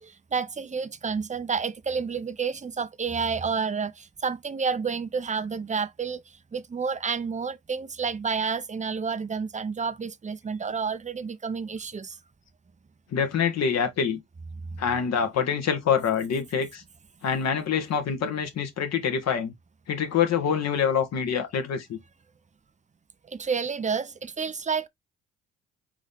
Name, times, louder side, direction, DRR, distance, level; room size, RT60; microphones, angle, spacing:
voice 1, 0.0-6.2 6.5-12.2 23.3-24.9, right 5 dB, 25° right, 0.7 m, -30 dB
voice 2, 13.1-14.2 14.8-16.8 17.2-19.5 19.9-22.0, left 7 dB, 55° left, 1.4 m, -25 dB
4.1 x 3.8 x 3.4 m
hypercardioid pair, 60°, 32 cm